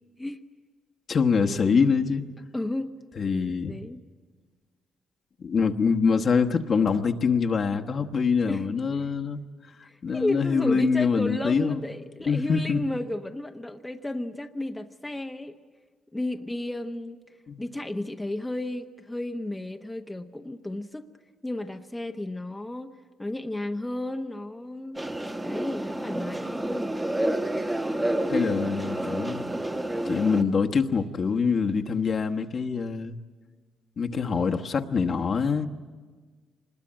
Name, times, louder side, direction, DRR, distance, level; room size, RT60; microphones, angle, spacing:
voice 1, 1.1-2.2 3.2-3.8 5.4-9.4 10.0-11.8 12.3-12.8 17.5-17.6 28.3-29.5 30.1-33.2 34.0-35.7, left 5 dB, 50° left, 1.2 m, -24 dB
voice 2, 2.5-2.9 3.7-4.0 8.5-8.7 9.8-15.6 16.1-17.2 17.6-21.1 21.4-25.0 25.4-27.0, left 1 dB, 10° left, 0.9 m, -33 dB
sound 1, 24.9-30.4, right 1 dB, 15° right, 1.3 m, -29 dB
25.0 x 20.5 x 8.8 m
cardioid pair, 90°, 0 cm